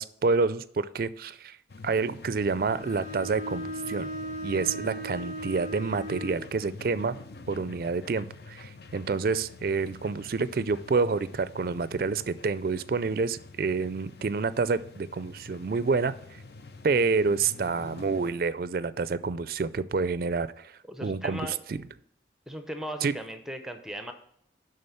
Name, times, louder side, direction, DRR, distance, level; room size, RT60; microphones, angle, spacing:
voice 1, 0.0-1.6 1.8-4.1 4.4-7.2 7.5-16.1 16.8-20.7 21.0-21.4 21.7-21.8 23.0-23.1, right 4 dB, 50° right, 15 dB, 0.4 m, -28 dB
sound 1, 1.7-18.3, left 3 dB, 60° left, 0.6 m, -47 dB
Bowed string instrument, 2.5-6.5, equal, 45° left, 2.0 m, -37 dB
voice 2, 20.9-21.6 22.5-24.1, equal, 5° right, 6 dB, 0.6 m, -37 dB
10.5 x 3.8 x 5.6 m, 0.68 s
head